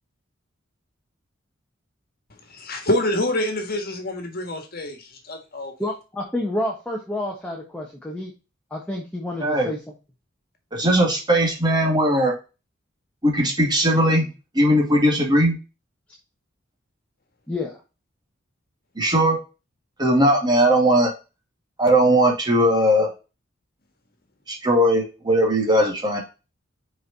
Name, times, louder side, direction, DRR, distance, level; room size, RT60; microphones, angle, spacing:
voice 1, 2.5-5.7, left 1 dB, 50° left, 1.7 m, -26 dB
voice 2, 5.8-8.3 8.7-9.8 17.5-17.8, left 1 dB, 5° left, 1.4 m, -29 dB
voice 3, 9.4-9.7 10.7-12.3 13.2-15.6 19.0-19.4 20.0-21.1 21.8-23.1 24.5-26.2, right 1 dB, 20° right, 2.3 m, -19 dB
6.2 x 4.8 x 4.1 m
head